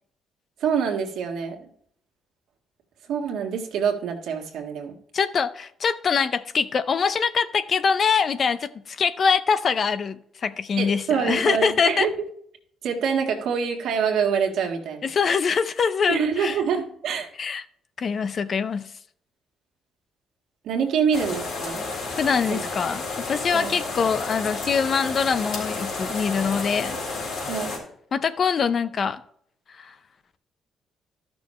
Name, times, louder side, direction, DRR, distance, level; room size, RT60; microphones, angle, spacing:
voice 1, 0.6-1.7 3.1-5.0 10.8-12.1 12.8-15.1 16.1-17.3 20.6-21.9 22.5-22.6 23.5-23.7 27.5-27.7, right 7 dB, 80° right, 1.7 m, -25 dB
voice 2, 5.1-12.1 15.0-16.6 17.4-17.6 18.0-18.9 22.2-27.0 28.1-29.2 29.8-29.9, left 6 dB, 50° left, 0.6 m, -24 dB
sound 1, 21.1-27.8, left 3 dB, 70° left, 3.6 m, -31 dB
13.0 x 6.2 x 3.2 m
cardioid pair, 90°, 0 cm